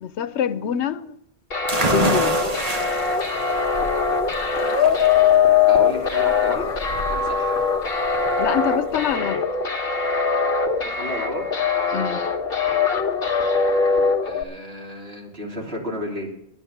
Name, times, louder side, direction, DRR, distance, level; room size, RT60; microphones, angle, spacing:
voice 1, 0.0-1.1 1.9-2.4 8.4-9.4 11.9-12.2, left 9 dB, 90° left, 1.0 m, -25 dB
sound 1, 1.5-14.4, left 5 dB, 55° left, 1.5 m, -21 dB
sound 2, 1.7-9.2, right 2 dB, 35° right, 1.1 m, -29 dB
voice 2, 5.7-6.7 7.1-7.6 10.8-11.5 14.2-16.3, equal, 65° right, 3.7 m, -32 dB
11.5 x 10.0 x 7.1 m
omnidirectional pair, 1.1 m